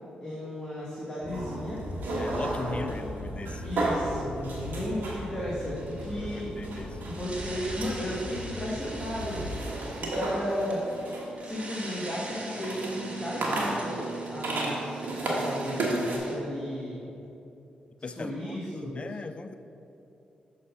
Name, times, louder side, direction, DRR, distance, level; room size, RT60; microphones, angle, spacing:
voice 1, 0.2-1.8 2.8-2.9 3.6-6.5 7.0-17.1 18.0-19.1, equal, 15° left, -7 dB, 1.6 m, -35 dB
sound 1, 1.2-9.5, left 1 dB, 75° left, 0.9 m, -40 dB
sound 2, 1.3-16.2, right 2 dB, 70° right, 1.2 m, -34 dB
voice 2, 2.2-3.6 6.2-7.0 18.0-18.6 18.8-19.5, left 3 dB, 35° left, 9 dB, 0.3 m, -39 dB
sound 3, 5.8-6.2 7.1-16.4, right 1 dB, 40° right, 1.3 m, -44 dB
6.1 x 4.0 x 5.6 m, 2.8 s
supercardioid pair, 45°, 3 cm